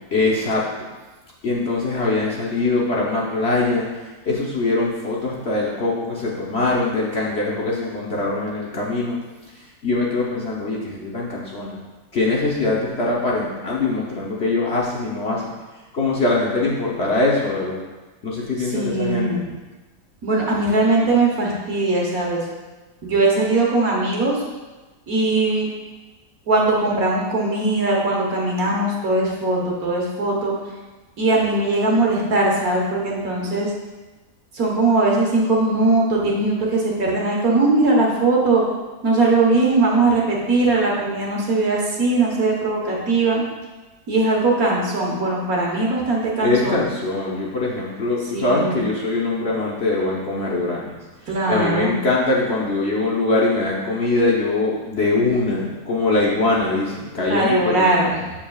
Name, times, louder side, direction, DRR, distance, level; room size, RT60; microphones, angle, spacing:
voice 1, 0.1-0.6 1.4-3.9 4.2-9.2 9.8-11.8 12.1-15.5 15.9-17.8 18.2-19.3 46.4-51.0 51.5-57.9, left 2 dB, 45° left, -4 dB, 1.0 m, -22 dB
voice 2, 18.6-19.5 20.2-22.4 23.0-24.4 25.1-25.7 26.5-30.5 31.2-33.7 34.5-38.6 39.0-43.4 44.1-46.8 48.3-48.8 51.3-52.0 57.3-58.3, right 2 dB, 60° right, -2 dB, 1.7 m, -20 dB
7.4 x 7.1 x 2.4 m, 1.2 s
omnidirectional pair, 1.8 m